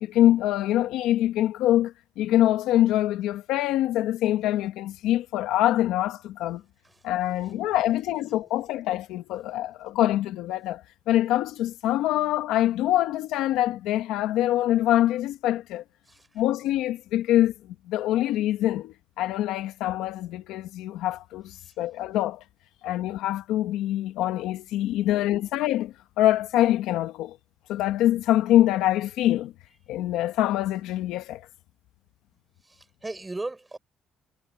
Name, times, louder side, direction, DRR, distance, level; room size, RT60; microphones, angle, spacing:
voice 1, 0.0-6.6 7.0-15.8 16.4-22.4 22.8-27.4 27.7-29.5 29.9-31.5, left 13 dB, 90° left, 1.8 m, -24 dB
voice 2, 7.3-8.5 9.9-10.0 14.4-14.6 16.1-16.4 21.6-21.8 25.1-25.5 32.6-33.8, right 2 dB, 10° right, 6.3 m, -41 dB
cardioid pair, 145°, 0 cm